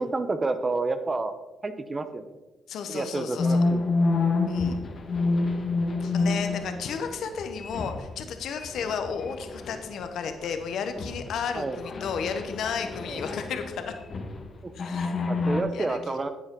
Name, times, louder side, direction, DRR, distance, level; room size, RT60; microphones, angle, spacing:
voice 1, 0.0-1.3 1.6-2.3 2.9-3.8 11.5-11.8 13.1-13.2 14.6-14.7 15.3-16.3, right 3 dB, 30° right, 9 dB, 0.9 m, -29 dB
voice 2, 2.7-3.6 4.5-4.8 6.0-13.9 14.7-16.2, left 6 dB, 70° left, 7 dB, 1.0 m, -33 dB
sound 1, 3.4-8.2 8.6-10.1 10.5-10.6 11.0-14.4 14.8-15.6, left 3 dB, 50° left, 1.4 m, -28 dB
11.0 x 8.1 x 3.8 m, 1.1 s
supercardioid pair, 55°, 0 cm